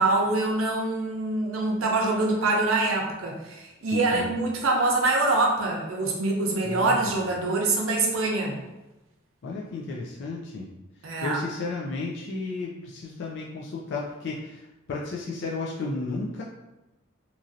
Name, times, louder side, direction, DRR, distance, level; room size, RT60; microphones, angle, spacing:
voice 1, 0.0-8.6 11.0-11.4, right 2 dB, 75° right, 0 dB, 0.6 m, -25 dB
voice 2, 3.9-4.4 6.6-7.2 9.4-10.7 11.2-16.4, left 3 dB, 60° left, -3 dB, 0.3 m, -33 dB
3.0 x 2.5 x 2.6 m, 1.0 s
head